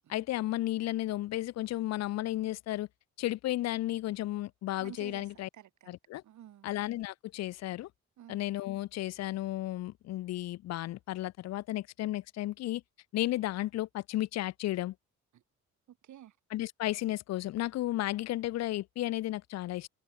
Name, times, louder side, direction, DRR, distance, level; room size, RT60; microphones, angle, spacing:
voice 1, 0.1-2.9 3.2-5.5 5.9-6.2 6.6-7.9 8.3-12.8 13.1-14.9 16.5-19.9, left 15 dB, 60° left, 0.5 m, -33 dB
voice 2, 4.8-5.3 5.5-5.9 6.2-6.7 8.2-8.4 15.3-15.4 15.9-16.3, right 11 dB, 70° right, 6.2 m, -51 dB
cardioid pair, 90°, 30 cm